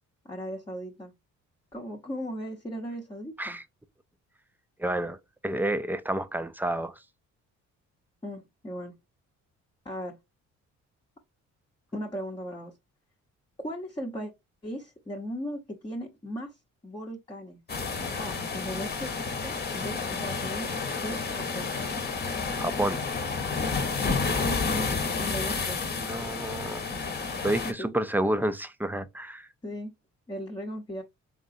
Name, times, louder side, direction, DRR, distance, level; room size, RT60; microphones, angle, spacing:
voice 1, 0.2-1.1 1.7-3.6 8.2-8.9 9.8-10.2 11.9-12.7 13.6-14.3 14.6-16.5 16.8-17.6 18.2-19.1 19.4-21.7 24.4-24.9 25.2-25.8 27.6-27.9 29.6-29.9 30.3-31.0, equal, 15° left, 0.8 m, -37 dB
voice 2, 4.8-5.2 5.4-7.0 22.6-23.0 26.0-26.8 27.4-29.5, right 1 dB, 5° right, 0.4 m, -29 dB
sound 1, 17.7-27.7, left 4 dB, 35° left, 0.9 m, -30 dB
3.9 x 3.6 x 2.5 m
cardioid pair, 90°, 30 cm